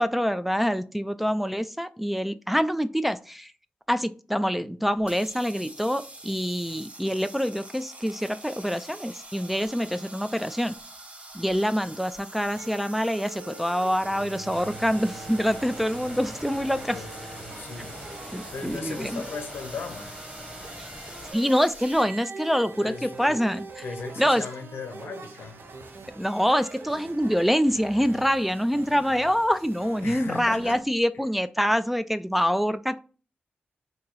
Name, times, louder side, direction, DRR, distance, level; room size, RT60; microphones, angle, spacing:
voice 1, 0.0-3.5 3.9-10.7 11.3-17.0 18.3-19.2 20.8-20.9 21.3-23.8 24.2-24.4 26.2-33.0, equal, 5° right, 0.3 m, -25 dB
sound 1, 5.0-22.0, right 1 dB, 30° right, 0.9 m, -45 dB
sound 2, 12.6-30.8, right 4 dB, 65° right, 0.7 m, -44 dB
sound 3, 14.5-21.3, left 1 dB, 10° left, 1.0 m, -44 dB
voice 2, 16.8-18.0 18.5-20.2 22.8-23.4 23.8-25.6 30.0-30.9, left 4 dB, 75° left, 0.7 m, -37 dB
3.0 x 2.7 x 3.8 m
supercardioid pair, 45°, 4 cm